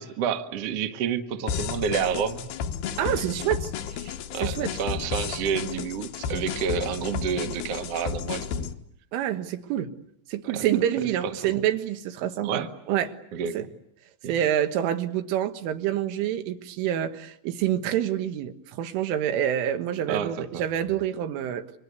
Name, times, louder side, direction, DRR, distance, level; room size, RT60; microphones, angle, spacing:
voice 1, 0.0-2.5 3.0-3.1 4.0-8.7 10.5-10.7 11.2-11.6 12.4-12.7 13.3-13.7 14.2-14.3 20.1-20.6, right 7 dB, 70° right, 6 dB, 1.4 m, -30 dB
sound 1, 1.5-8.7, left 7 dB, 70° left, 2.8 m, -32 dB
voice 2, 3.0-3.7 4.3-4.8 9.1-9.9 10.3-13.1 13.6-13.7 14.2-21.7, right 11 dB, 85° right, 7 dB, 4.0 m, -27 dB
29.0 x 24.0 x 8.2 m, 0.73 s
omnidirectional pair, 5.5 m